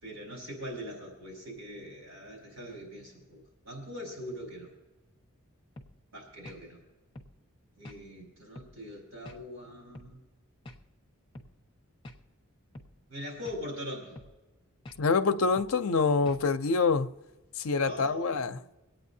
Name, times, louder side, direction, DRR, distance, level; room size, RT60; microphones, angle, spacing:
voice 1, 0.0-3.4 3.6-4.7 6.1-6.8 7.8-10.2 13.1-14.2 17.8-18.7, equal, 70° right, 4.2 m, -42 dB
sound 1, 5.8-5.9 6.4-6.6 7.2-7.3 7.8-8.0 8.6-8.7 9.3-9.4 9.9-10.1 10.7-10.8 11.3-11.5 12.0-12.2 12.7-12.9 13.4-13.6 14.2-14.4 14.8-15.0 15.6-15.7 16.3-16.5, left 1 dB, 25° left, 1.2 m, -47 dB
voice 2, 15.0-17.1 17.6-18.5, left 4 dB, 75° left, 0.5 m, -26 dB
26.5 x 9.0 x 2.7 m
head